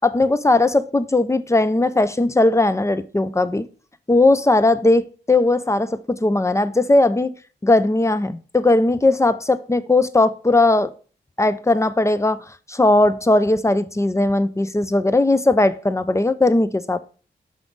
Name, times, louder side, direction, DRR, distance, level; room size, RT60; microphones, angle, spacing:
voice 1, 0.0-3.7 4.1-7.3 7.6-10.9 11.4-17.0, left 2 dB, 15° left, 0.5 m, -18 dB
5.8 x 5.0 x 3.9 m
cardioid pair, 55°, 19 cm